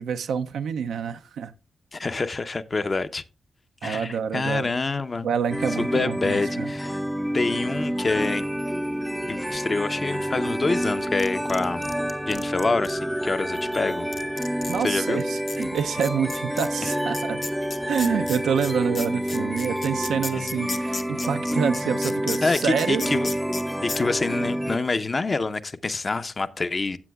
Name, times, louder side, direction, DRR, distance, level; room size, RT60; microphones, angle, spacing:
voice 1, 0.0-1.5 3.8-4.7 5.2-6.7 14.7-17.4 17.9-23.2, right 7 dB, 85° right, 0.4 m, -27 dB
voice 2, 1.9-3.2 3.8-5.3 5.8-7.0 7.3-8.4 9.3-11.8 12.3-14.1 14.8-15.2 16.8-16.9 20.3-20.5 22.4-23.3 23.8-27.0, left 3 dB, 45° left, 0.7 m, -26 dB
sound 1, 5.5-24.8, equal, ahead, 0.4 m, -28 dB
sound 2, 11.0-12.9 13.7-13.8 14.1-14.8 15.2-15.3 15.5-23.6 23.9-24.0, left 4 dB, 60° left, 1.0 m, -34 dB
15.5 x 7.7 x 2.3 m
supercardioid pair, 45°, 0 cm